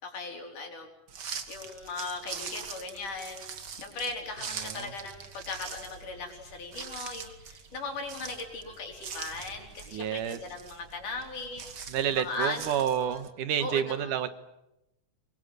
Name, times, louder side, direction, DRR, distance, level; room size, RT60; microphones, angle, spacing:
voice 1, 0.0-0.9 1.5-3.4 3.8-11.6 12.0-13.2 13.6-14.2, left 3 dB, 85° left, 3 dB, 5.8 m, -38 dB
sound 1, 1.1-13.3, right 6 dB, 40° right, 1.8 m, -43 dB
voice 2, 4.6-4.9 9.9-10.4 11.9-14.3, right 9 dB, 90° right, 12 dB, 2.9 m, -29 dB
24.5 x 23.0 x 9.4 m, 0.88 s
omnidirectional pair, 3.5 m